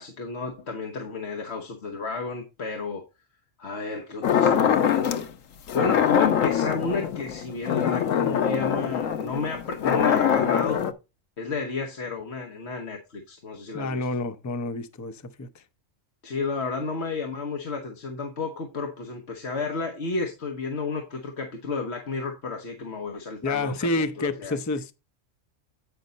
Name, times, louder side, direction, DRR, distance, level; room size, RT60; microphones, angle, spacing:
voice 1, 0.0-3.0 3.6-5.3 5.7-10.8 11.4-14.1 16.2-24.6, left 4 dB, 60° left, 1.4 m, -32 dB
sound 1, 4.2-5.3 5.7-10.9, left 8 dB, 90° left, 1.2 m, -23 dB
voice 2, 13.7-15.6 23.4-24.9, left 2 dB, 25° left, 0.4 m, -29 dB
9.3 x 5.3 x 4.0 m
omnidirectional pair, 1.3 m